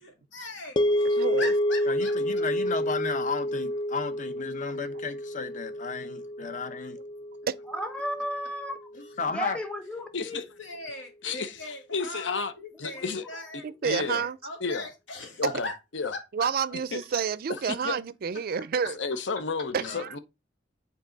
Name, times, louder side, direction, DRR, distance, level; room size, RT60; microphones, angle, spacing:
voice 1, 0.0-2.7 8.9-9.1 10.2-13.6 13.9-15.7 16.1-16.5, left 2 dB, 90° left, 2.2 m, -40 dB
sound 1, 0.8-9.0, equal, 25° left, 0.3 m, -29 dB
voice 2, 1.2-1.5 6.4-6.5 7.5-7.6 13.6-14.4 16.3-19.0 19.7-20.2, right 6 dB, 55° right, 0.4 m, -29 dB
voice 3, 1.9-7.0 9.2-9.6 19.8-20.0, left 5 dB, 45° left, 0.8 m, -34 dB
voice 4, 7.7-8.9 9.3-10.1 12.9-13.3, equal, 5° left, 0.9 m, -34 dB
voice 5, 10.1-10.4 11.2-12.5 12.8-13.2 13.8-14.2 14.6-14.9 15.4-15.7 15.9-16.1 16.9-17.0 17.6-18.0 18.9-20.2, left 4 dB, 75° left, 0.8 m, -31 dB
7.3 x 4.0 x 3.9 m
head